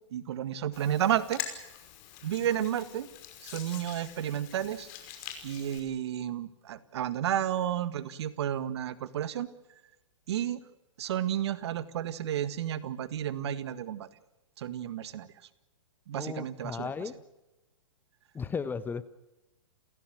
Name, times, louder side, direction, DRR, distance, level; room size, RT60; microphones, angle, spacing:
voice 1, 0.1-1.4 2.2-3.1 3.4-4.9 5.4-9.5 10.3-10.6 11.0-14.1 14.6-15.3 16.1-16.9, right 10 dB, 60° right, 14 dB, 1.8 m, -32 dB
Hands, 0.7-5.8, left 10 dB, 40° left, 5.5 m, -44 dB
voice 2, 16.1-17.1 18.3-19.1, left 5 dB, 10° left, 14 dB, 1.0 m, -35 dB
29.5 x 16.5 x 7.7 m, 1.0 s
hypercardioid pair, 125°, 16 cm